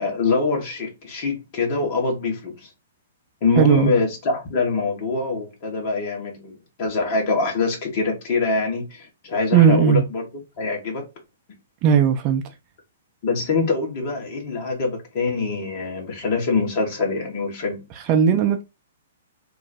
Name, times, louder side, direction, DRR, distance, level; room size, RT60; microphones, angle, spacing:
voice 1, 0.0-2.7 3.4-10.3 10.6-11.1 13.2-17.8, left 3 dB, 40° left, 1.4 m, -24 dB
voice 2, 3.6-3.9 9.5-10.0 11.8-12.5 18.1-18.6, right 7 dB, 35° right, 0.5 m, -17 dB
3.0 x 2.2 x 4.1 m
figure-of-eight pair, 115°, 0 cm